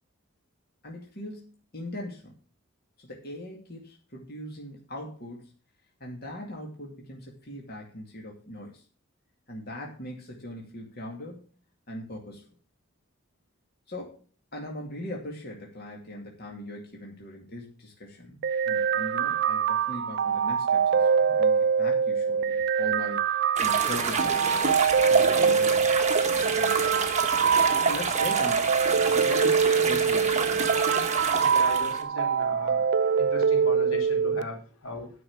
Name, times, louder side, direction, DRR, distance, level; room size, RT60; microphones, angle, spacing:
voice 1, 0.8-2.3 3.0-5.5 6.0-8.8 9.5-11.5 11.9-12.5 13.9-14.2 14.5-25.9 26.3-27.2 27.8-29.5 29.8-30.6, left 1 dB, 50° left, -1 dB, 2.3 m, -40 dB
sound 1, 18.4-34.4, right 6 dB, 50° right, 0.4 m, -24 dB
sound 2, 23.6-32.0, right 4 dB, 35° right, 1.4 m, -28 dB
voice 2, 31.4-32.9 33.2-35.1, left 2 dB, 85° left, 1 dB, 3.5 m, -37 dB
9.6 x 6.1 x 7.2 m, 0.37 s
head